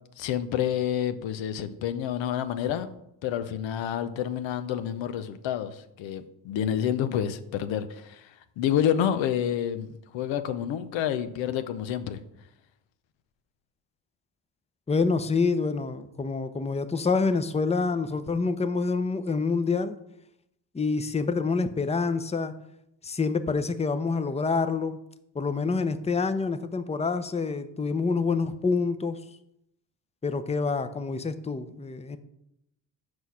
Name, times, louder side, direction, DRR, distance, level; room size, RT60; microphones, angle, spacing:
voice 1, 0.2-2.9 3.2-12.2, left 9 dB, 85° left, 11 dB, 0.7 m, -29 dB
voice 2, 14.9-20.0 20.7-22.5 23.0-25.0 25.3-29.2 30.2-32.2, left 4 dB, 15° left, 11 dB, 0.6 m, -27 dB
6.2 x 4.8 x 5.6 m, 0.80 s
supercardioid pair, 65°, 44 cm